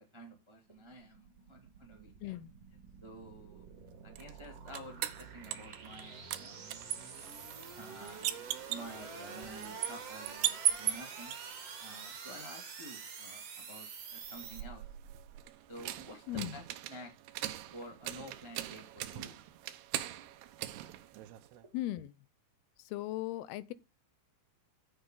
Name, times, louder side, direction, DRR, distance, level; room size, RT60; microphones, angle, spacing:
voice 1, 0.1-2.4 3.0-3.6 4.0-6.9 7.6-8.2 8.7-11.3 11.8-14.8 15.7-17.1 17.7-19.4, equal, 15° right, 1.0 m, -50 dB
sound 1, 0.7-14.6, right 6 dB, 50° right, 2.4 m, -48 dB
voice 2, 2.2-2.5 16.3-16.6 21.7-22.1 22.9-23.7, left 15 dB, 85° left, 2.7 m, -37 dB
sound 2, 4.2-6.0 6.3-11.4 14.2-21.7, right 13 dB, 85° right, 2.9 m, -39 dB
11.0 x 7.9 x 3.8 m
omnidirectional pair, 4.5 m